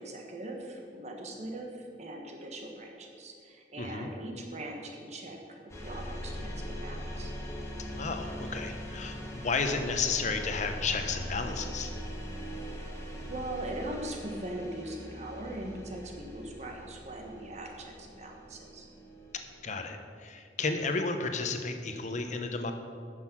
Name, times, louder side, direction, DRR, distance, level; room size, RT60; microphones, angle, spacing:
voice 1, 0.0-7.3 12.7-12.9 13.3-18.9, right 1 dB, 40° right, 2 dB, 1.2 m, -41 dB
voice 2, 3.8-4.1 7.9-11.9 19.6-22.7, left 4 dB, 45° left, 6 dB, 0.8 m, -32 dB
sound 1, 5.7-19.6, equal, 15° left, 1.5 m, -41 dB
9.3 x 6.3 x 6.0 m, 2.3 s
head